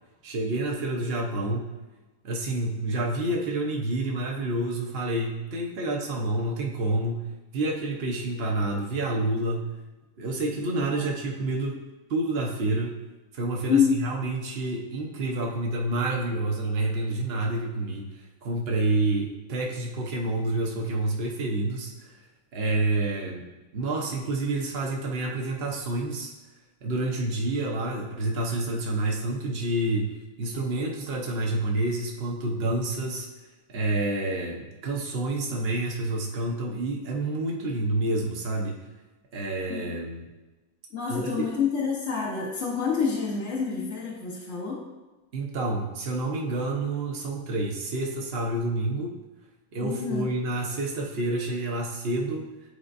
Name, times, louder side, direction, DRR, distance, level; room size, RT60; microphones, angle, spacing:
voice 1, 0.2-1.7 2.2-9.7 10.2-11.8 12.1-12.9 13.3-22.1 22.5-23.5 23.7-26.3 26.8-33.3 33.7-38.8 39.3-40.3 41.1-41.3 45.3-49.2 49.7-52.5, right 2 dB, 50° right, 0 dB, 0.7 m, -28 dB
voice 2, 40.9-44.8 49.8-50.3, left 6 dB, 50° left, -4 dB, 0.8 m, -27 dB
9.7 x 4.3 x 2.6 m, 1.2 s
omnidirectional pair, 2.2 m